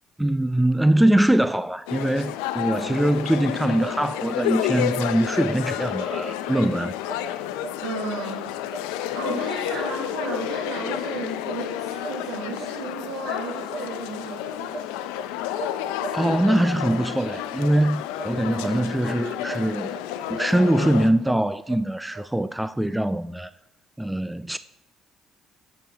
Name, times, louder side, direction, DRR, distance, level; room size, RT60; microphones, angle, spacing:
voice 1, 0.2-6.9 16.1-19.9 20.3-23.5 24.0-24.6, right 1 dB, 5° right, 0.3 m, -22 dB
sound 1, 1.9-21.1, left 12 dB, 85° left, 0.4 m, -30 dB
sound 2, 2.7-2.9 3.2-3.4 3.8-4.0 4.3-4.5 4.9-5.1 5.4-5.6 6.0-6.1 6.5-6.7 7.0-7.2 7.6-7.8 8.1-8.3 8.7-8.8 9.2-9.4 9.8-9.9 10.3-10.4 10.9-11.0 11.4-11.6 12.0-12.2 12.5-12.7 13.1-13.2 13.7-13.9 14.2-14.4 14.7-15.3 15.6-16.5 16.8-17.0 17.3-17.4 17.7-18.3 18.6-19.1 19.5-19.6 19.9-20.0 20.3-20.5 20.8-20.9 21.2-21.8 22.1-22.2, right 3 dB, 60° right, 0.7 m, -38 dB
voice 2, 7.8-8.5 9.1-14.7 18.4-18.7, right 4 dB, 80° right, 1.4 m, -34 dB
13.0 x 7.2 x 2.8 m
supercardioid pair, 65°, 0 cm